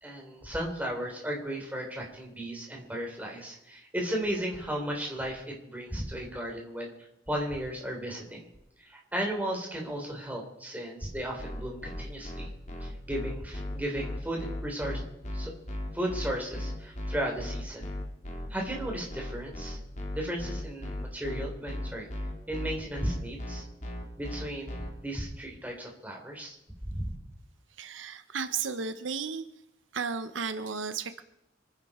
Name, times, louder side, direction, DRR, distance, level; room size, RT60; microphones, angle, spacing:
voice 1, 0.0-6.9 7.3-8.5 8.8-12.5 12.8-15.0 15.3-15.5 15.9-17.9 18.5-19.8 20.1-22.1 22.5-23.6 24.2-26.6 26.8-27.0, right 1 dB, 10° right, 0 dB, 3.7 m, -35 dB
sound 1, 11.4-24.9, left 1 dB, 40° left, 2.7 m, -36 dB
voice 2, 27.8-29.4 29.9-31.2, right 5 dB, 80° right, 10 dB, 0.8 m, -34 dB
26.5 x 10.5 x 4.4 m, 0.84 s
head